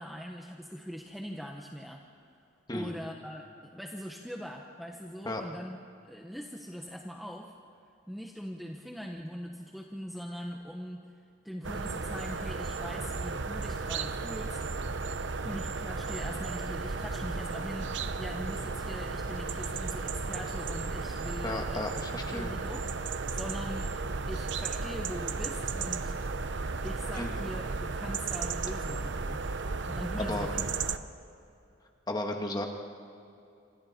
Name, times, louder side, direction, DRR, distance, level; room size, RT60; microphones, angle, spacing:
voice 1, 0.0-2.0 2.7-5.8 6.0-7.5 8.1-11.1 11.4-14.6 15.4-22.9 23.3-23.9 24.3-26.1 26.8-29.4 29.9-31.1, equal, ahead, 1 dB, 1.1 m, -41 dB
sound 1, 11.6-31.0, right 4 dB, 65° right, 0.8 m, -34 dB
voice 2, 21.4-22.6 27.1-27.4 30.2-30.5 32.1-32.7, left 1 dB, 20° left, 2 dB, 1.9 m, -34 dB
27.5 x 26.5 x 4.4 m, 2.7 s
head